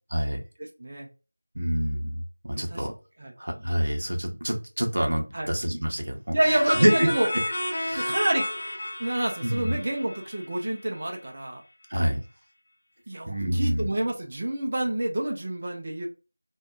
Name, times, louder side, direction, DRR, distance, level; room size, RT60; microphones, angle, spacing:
voice 1, 1.5-2.9 3.4-7.1 7.8-8.2 9.4-9.8 11.9-12.2 13.3-13.9, equal, 60° right, 0.7 m, -26 dB
voice 2, 2.5-2.9 3.2-3.3 5.3-5.5 6.3-7.3 8.0-8.5 9.0-11.6 13.1-16.1, right 1 dB, 30° right, 0.4 m, -28 dB
sound 1, 6.4-11.0, left 1 dB, 30° left, 0.8 m, -32 dB
2.6 x 2.2 x 2.2 m
figure-of-eight pair, 175°, 0 cm